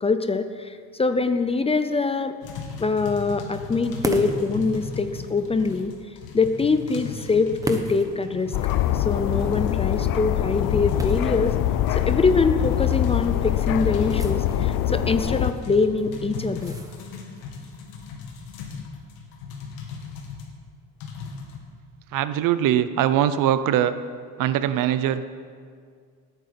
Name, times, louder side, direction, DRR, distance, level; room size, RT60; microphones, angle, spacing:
voice 1, 0.0-2.4 2.8-5.9 6.3-8.5 8.9-11.6 11.9-16.8, left 4 dB, 15° left, 10 dB, 0.5 m, -24 dB
sound 1, 2.4-20.5 21.0-21.6, left 5 dB, 80° left, 2.4 m, -37 dB
sound 2, 3.9-17.5, right 2 dB, 10° right, 1.1 m, -39 dB
sound 3, 8.5-15.5, left 12 dB, 65° left, 0.7 m, -24 dB
voice 2, 22.1-24.0 24.4-25.3, right 11 dB, 60° right, 13 dB, 0.8 m, -22 dB
18.5 x 9.4 x 5.8 m, 2.1 s
cardioid pair, 130°, 36 cm